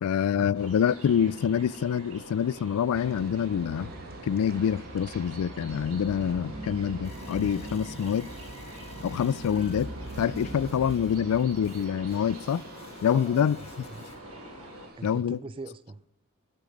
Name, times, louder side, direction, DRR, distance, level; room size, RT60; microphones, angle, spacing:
voice 1, 0.0-3.9 4.2-8.3 9.0-9.9 10.2-12.6 13.0-13.6 15.0-15.4, left 8 dB, 75° left, 0.3 m, -26 dB
sound 1, 0.5-14.9, right 1 dB, 85° right, 4.2 m, -45 dB
sound 2, 2.9-15.2, right 2 dB, 45° right, 0.9 m, -43 dB
sound 3, 7.0-14.2, left 3 dB, 25° left, 1.4 m, -52 dB
voice 2, 13.1-14.2 15.0-16.0, right 3 dB, 25° right, 0.4 m, -43 dB
13.5 x 8.0 x 5.3 m
head